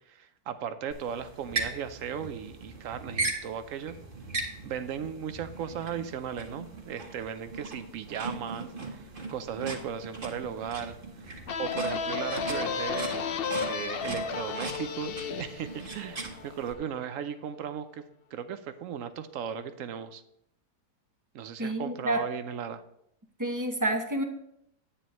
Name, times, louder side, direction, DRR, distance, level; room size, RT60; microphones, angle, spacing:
voice 1, 0.1-3.9 4.6-11.0 11.2-11.3 11.6-13.3 13.6-18.0 18.3-20.2 21.3-22.8, right 8 dB, 65° right, 11 dB, 0.9 m, -36 dB
sound 1, 0.9-16.7, right 3 dB, 35° right, 1.3 m, -39 dB
sound 2, 11.5-16.9, left 5 dB, 75° left, 0.5 m, -33 dB
voice 2, 21.6-22.2 23.4-24.2, right 1 dB, 20° right, 4 dB, 0.6 m, -29 dB
9.9 x 9.0 x 3.0 m, 0.74 s
omnidirectional pair, 1.7 m